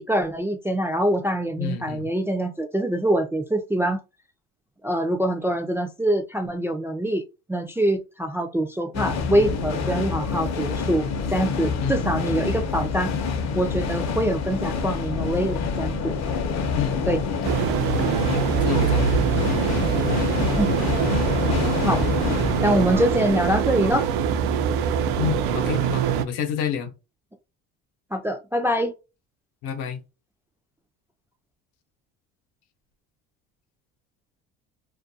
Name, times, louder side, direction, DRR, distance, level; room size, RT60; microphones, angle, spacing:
voice 1, 0.0-4.0 4.8-7.2 7.5-13.1 13.5-16.1 17.0-17.2 20.6-20.8 21.9-22.0 22.6-24.1 28.1-28.9, right 1 dB, 5° right, 0.3 m, -24 dB
voice 2, 1.6-2.1 11.8-12.4 16.7-17.6 18.3-19.2 25.2-26.9 29.6-30.0, left 8 dB, 75° left, 0.9 m, -30 dB
sound 1, 8.9-23.7, left 5 dB, 45° left, 0.7 m, -27 dB
sound 2, 17.4-26.2, right 8 dB, 75° right, 0.5 m, -24 dB
2.5 x 2.2 x 2.6 m
supercardioid pair, 85°, 37 cm